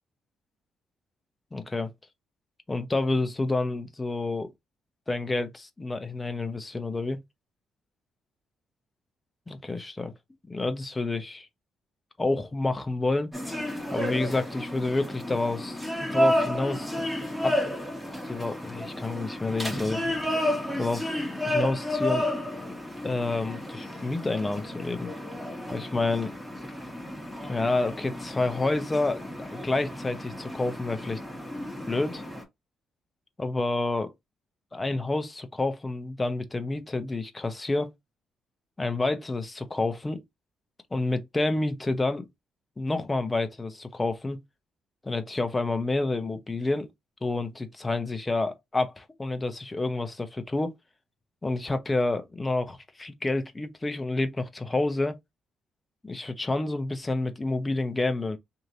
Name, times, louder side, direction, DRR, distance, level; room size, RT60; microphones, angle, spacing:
voice 1, 1.5-1.9 2.7-4.5 5.1-7.2 9.5-10.1 10.5-11.5 12.2-13.3 13.9-15.8 16.1-16.9 17.4-17.6 18.0-20.0 20.8-21.2 21.5-22.3 23.0-25.1 25.7-26.3 27.5-31.2 31.9-32.2 33.4-34.1 34.7-37.9 38.8-40.2 40.9-42.3 42.8-44.4 45.0-46.9 47.2-50.7 51.4-55.2 56.0-58.4, left 2 dB, 20° left, 0.8 m, -29 dB
sound 1, 13.3-32.4, left 1 dB, ahead, 1.5 m, -31 dB
3.2 x 2.8 x 3.9 m
cardioid pair, 90°, 0 cm